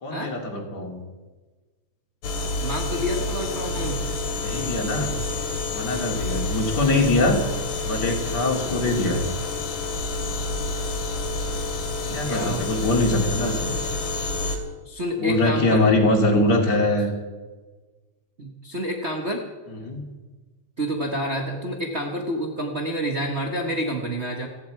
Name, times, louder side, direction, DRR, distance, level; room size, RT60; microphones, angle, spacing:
voice 1, 0.0-1.0 4.4-5.1 5.7-7.4 7.8-9.2 12.1-13.8 15.2-17.1 19.7-20.0, left 2 dB, 35° left, 1 dB, 2.7 m, -23 dB
sound 1, 2.2-14.6, left 2 dB, 60° left, 3.5 m, -28 dB
voice 2, 2.6-4.1 12.1-12.6 14.8-16.1 16.3-16.4 18.4-19.5 20.8-24.5, equal, 55° right, 1 dB, 0.7 m, -28 dB
28.5 x 11.0 x 4.7 m, 1.3 s
omnidirectional pair, 3.6 m